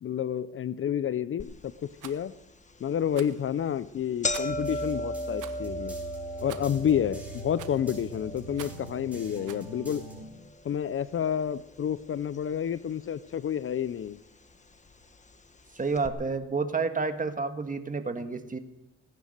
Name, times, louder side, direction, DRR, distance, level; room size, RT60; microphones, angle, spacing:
voice 1, 0.0-1.7 2.0-2.3 2.8-5.9 6.4-10.0 10.6-14.2, left 9 dB, 45° left, 16 dB, 0.6 m, -29 dB
sound 1, 1.4-1.5 2.0-2.1 3.0-3.2 3.5-3.6 3.8-12.1 12.3-13.1 13.9-14.0 14.9-15.0 15.3-15.4 15.9-16.1, left 1 dB, 25° left, 1.5 m, -37 dB
Rattle, 2.0-2.2 3.1-3.4 4.3-4.7 5.4-5.6 6.5-6.8 7.6-7.9 8.5-8.9 9.5-9.7, right 12 dB, 90° right, 1.2 m, -45 dB
sound 2, 4.5-10.2, right 1 dB, 5° right, 5.6 m, -42 dB
voice 2, 15.7-18.6, right 4 dB, 25° right, 8 dB, 1.7 m, -30 dB
18.0 x 10.0 x 6.6 m, 0.96 s
cardioid pair, 90°, 30 cm